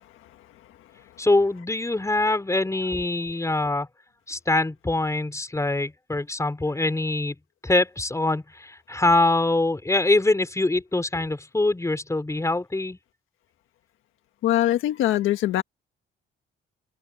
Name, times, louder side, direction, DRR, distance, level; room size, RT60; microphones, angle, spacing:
voice 1, 1.2-3.9 4.3-7.3 7.6-13.0, left 2 dB, 15° left, 4.5 m, -24 dB
voice 2, 14.4-15.6, left 13 dB, 85° left, 1.6 m, -22 dB
cardioid pair, 90°, 20 cm